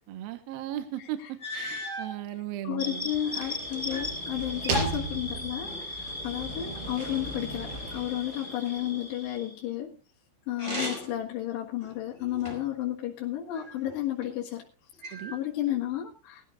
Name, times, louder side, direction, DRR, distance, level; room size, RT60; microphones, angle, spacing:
voice 1, 0.1-3.1 15.1-15.4, right 12 dB, 70° right, 8 dB, 2.5 m, -37 dB
sound 1, 0.8-0.9 1.4-2.2 2.9-4.1 4.4-5.9 10.5-11.3 11.8-12.8 13.5-14.3 15.0-15.8, left 1 dB, 15° right, 5.2 m, -37 dB
voice 2, 2.6-10.0 10.5-14.6 15.0-16.5, left 12 dB, 70° left, -4 dB, 3.7 m, -32 dB
sound 2, 2.8-9.6, left 2 dB, 20° left, 5.0 m, -38 dB
sound 3, 3.0-9.0, right 3 dB, 90° right, 6.5 m, -37 dB
21.0 x 14.0 x 2.5 m, 0.36 s
omnidirectional pair, 5.3 m